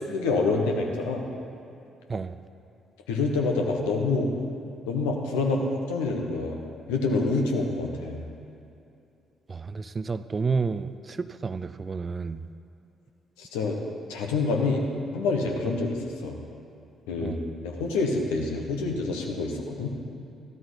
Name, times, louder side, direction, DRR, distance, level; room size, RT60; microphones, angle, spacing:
voice 1, 0.1-1.2 3.1-4.3 4.9-6.6 6.9-8.3 13.4-13.8 14.1-14.8 15.1-16.4 17.1-17.4 17.6-19.9, left 3 dB, 70° left, 1 dB, 1.3 m, -27 dB
voice 2, 9.5-12.4 17.2-17.4, right 4 dB, 35° right, 13 dB, 0.5 m, -30 dB
13.5 x 13.0 x 4.0 m, 2.6 s
figure-of-eight pair, 40°, 0 cm